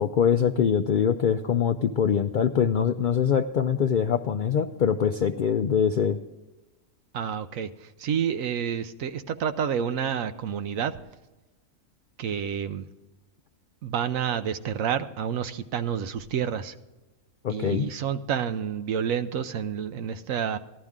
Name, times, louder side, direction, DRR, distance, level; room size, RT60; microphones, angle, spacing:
voice 1, 0.0-6.2 17.4-17.9, left 7 dB, 70° left, 8 dB, 0.4 m, -23 dB
voice 2, 7.1-10.9 12.2-12.9 13.8-16.8 17.5-20.6, right 8 dB, 80° right, 11 dB, 1.1 m, -29 dB
14.5 x 11.5 x 3.6 m, 1.1 s
omnidirectional pair, 1.4 m